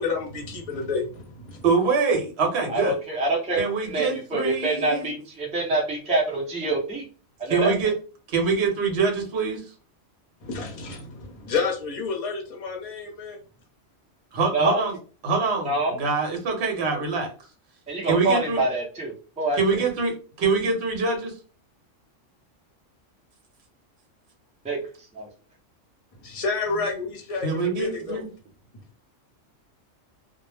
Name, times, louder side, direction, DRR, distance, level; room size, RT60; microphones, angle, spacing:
voice 1, 0.0-1.6 10.4-13.4 26.2-28.2, left 4 dB, 35° left, 0 dB, 0.7 m, -30 dB
voice 2, 1.6-2.9 3.6-5.1 7.5-7.9 8.3-9.6 14.3-15.0 15.2-17.3 18.0-18.6 19.6-21.3 27.4-28.3, right 4 dB, 60° right, 2 dB, 1.0 m, -24 dB
voice 3, 2.7-3.6 3.9-7.0 7.4-7.7 14.5-14.9 15.6-16.0 17.9-19.9 24.6-25.3, right 2 dB, 10° right, -3 dB, 0.5 m, -26 dB
2.4 x 2.1 x 3.2 m, 0.36 s
omnidirectional pair, 1.3 m